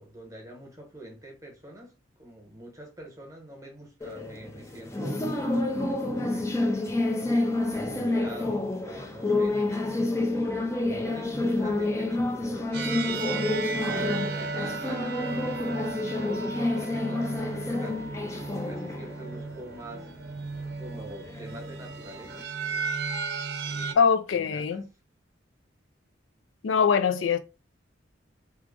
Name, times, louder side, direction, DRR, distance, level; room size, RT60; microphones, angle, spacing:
voice 1, 0.0-1.9 2.2-5.3 6.1-7.0 7.7-9.9 10.4-13.3 13.8-15.6 16.1-20.1 20.8-22.4 23.6-24.1 24.3-24.8, right 1 dB, 15° right, 1.1 m, -44 dB
sound 1, 4.0-22.4, left 2 dB, 15° left, 0.5 m, -29 dB
sound 2, 12.7-23.9, right 4 dB, 55° right, 0.5 m, -35 dB
voice 2, 24.0-24.8 26.6-27.4, left 6 dB, 75° left, 0.4 m, -23 dB
2.9 x 2.4 x 3.7 m
head